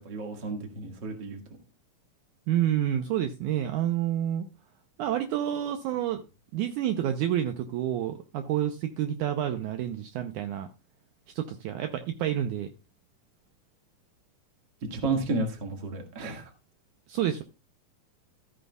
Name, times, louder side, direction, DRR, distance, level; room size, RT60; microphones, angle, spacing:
voice 1, 0.0-1.4 14.9-16.5, right 3 dB, 40° right, 3 dB, 2.0 m, -32 dB
voice 2, 2.5-4.5 5.0-6.2 6.5-10.7 11.4-12.7 17.1-17.4, right 11 dB, 75° right, 7 dB, 2.0 m, -29 dB
14.0 x 9.4 x 2.3 m, 0.27 s
omnidirectional pair, 4.0 m